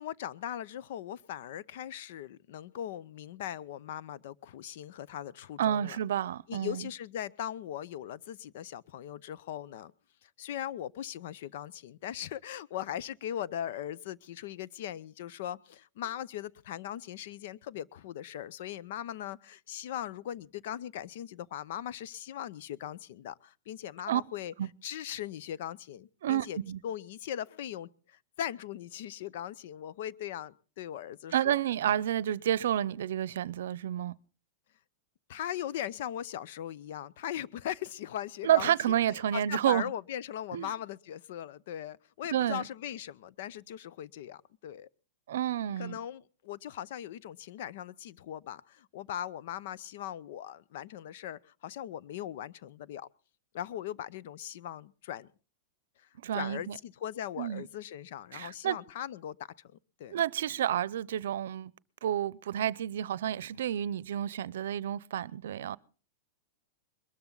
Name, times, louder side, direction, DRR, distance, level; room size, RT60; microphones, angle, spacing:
voice 1, 0.0-6.0 6.5-9.9 10.2-24.5 24.8-26.6 26.8-31.6 35.3-39.0 39.3-44.9 45.8-53.1 53.5-55.3 56.3-59.4 59.6-60.2, left 11 dB, 60° left, 0.8 m, -39 dB
voice 2, 5.6-6.9 24.1-24.2 24.6-24.7 26.2-26.8 31.3-34.2 38.4-39.9 40.5-40.7 42.3-42.6 45.3-46.0 56.2-56.8 57.4-57.6 58.3-58.8 60.1-61.7 62.0-65.8, right 11 dB, 80° right, 0.7 m, -30 dB
22.0 x 13.0 x 4.0 m
supercardioid pair, 155°, 0 cm